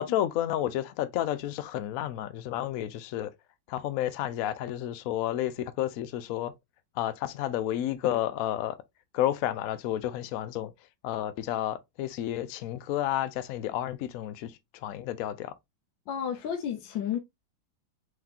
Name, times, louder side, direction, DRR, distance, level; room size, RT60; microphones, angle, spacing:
voice 1, 0.0-3.3 3.7-6.5 7.0-8.8 9.1-10.7 11.0-14.5 14.8-15.5, left 12 dB, 90° left, 0.7 m, -31 dB
voice 2, 16.1-17.2, left 8 dB, 75° left, 1.5 m, -31 dB
4.7 x 3.8 x 2.7 m
omnidirectional pair, 2.2 m